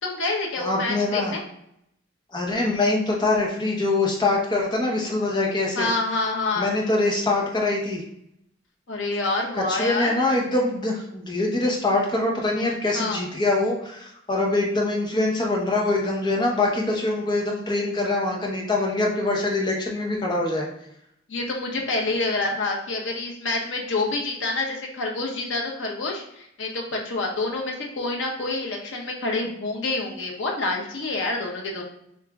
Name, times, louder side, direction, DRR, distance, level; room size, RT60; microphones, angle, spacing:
voice 1, 0.0-1.4 5.7-6.7 8.9-10.1 12.9-13.2 21.3-31.8, left 2 dB, 90° left, 0 dB, 0.9 m, -27 dB
voice 2, 0.6-1.3 2.3-5.9 6.6-8.0 9.5-20.6, left 2 dB, 25° left, -2 dB, 0.8 m, -24 dB
7.1 x 2.6 x 2.3 m, 0.77 s
head